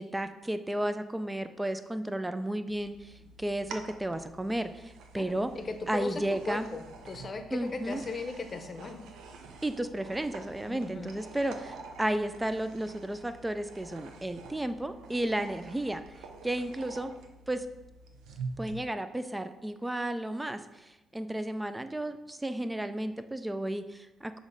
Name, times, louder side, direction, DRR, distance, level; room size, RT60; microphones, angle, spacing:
voice 1, 0.0-3.1 3.4-5.5 5.9-6.7 7.5-8.0 9.6-16.0 16.4-17.1 17.5-17.7 18.6-24.4, right 1 dB, 10° right, 10 dB, 0.4 m, -33 dB
sound 1, 2.7-18.7, right 4 dB, 85° right, 0.6 m, -47 dB
voice 2, 5.2-9.0 10.7-11.1, left 3 dB, 35° left, 6 dB, 0.7 m, -38 dB
6.1 x 3.1 x 5.2 m, 1.0 s
cardioid pair, 90°, 0 cm